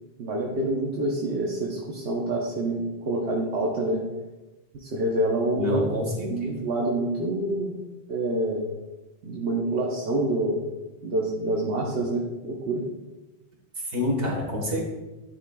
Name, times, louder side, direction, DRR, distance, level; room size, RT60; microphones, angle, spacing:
voice 1, 0.2-4.0 4.7-5.8 6.3-7.7 8.1-8.7 9.2-10.6 11.0-12.8, right 1 dB, 80° right, -3 dB, 1.1 m, -27 dB
voice 2, 5.5-6.5 13.9-14.8, left 1 dB, 65° right, -1 dB, 1.6 m, -27 dB
10.5 x 4.2 x 2.2 m, 1.1 s
omnidirectional pair, 1.1 m